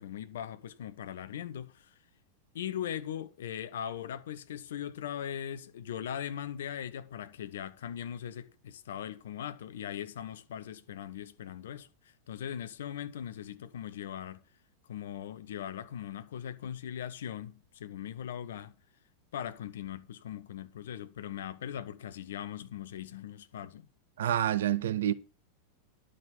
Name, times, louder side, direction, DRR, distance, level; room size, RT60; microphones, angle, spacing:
voice 1, 0.0-1.9 2.5-11.9 12.3-14.4 14.9-18.7 19.3-23.9, left 9 dB, 60° left, 0.8 m, -40 dB
voice 2, 24.2-25.1, right 11 dB, 60° right, 0.6 m, -28 dB
11.0 x 5.0 x 7.1 m
figure-of-eight pair, 90°, 0 cm